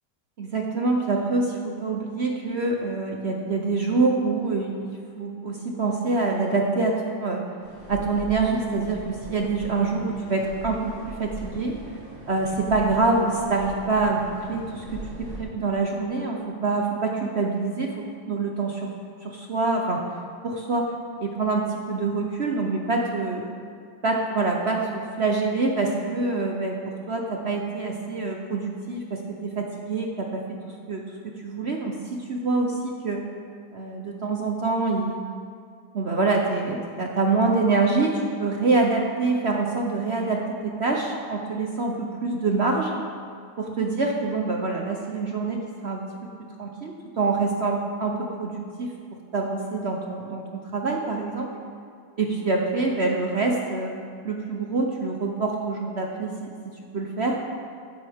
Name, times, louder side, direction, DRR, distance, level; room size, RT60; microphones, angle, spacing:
voice 1, 0.4-7.4 7.9-11.8 12.3-14.8 15.2-17.9 18.2-18.9 19.2-20.1 20.4-20.9 21.2-23.4 24.0-30.4 30.9-31.0 31.4-33.2 33.7-35.2 35.9-43.0 43.6-46.3 46.6-48.9 49.3-51.5 52.2-53.9 54.2-56.5 56.9-57.4, right 3 dB, 50° right, 1 dB, 0.8 m, -25 dB
sound 1, 7.6-15.4, right 1 dB, 90° right, 4.3 m, -40 dB
13.5 x 10.5 x 3.5 m, 2.2 s
omnidirectional pair, 1.9 m